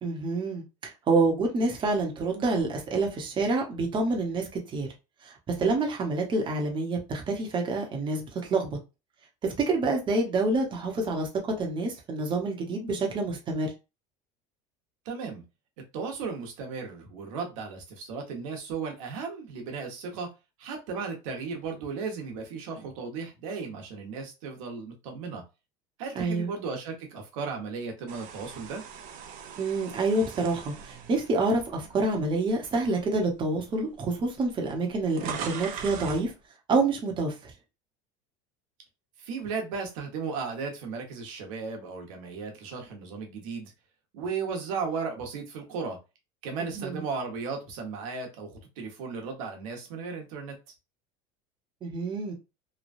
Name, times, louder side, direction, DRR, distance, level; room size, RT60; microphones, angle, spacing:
voice 1, 0.0-4.9 5.2-8.8 9.4-13.7 26.2-26.5 29.6-36.3 36.7-37.5 46.6-47.0 51.8-52.3, right 3 dB, 30° right, 0.9 m, -27 dB
voice 2, 15.0-15.4 15.8-20.3 20.6-25.4 26.0-28.8 39.2-43.7 44.1-46.0 46.4-50.6, right 5 dB, 80° right, 1.1 m, -35 dB
sound 1, 28.1-32.3 32.8-33.0 33.9-34.0 34.2-36.3, right 7 dB, 55° right, 0.6 m, -40 dB
3.1 x 2.3 x 2.5 m
supercardioid pair, 130°, 17 cm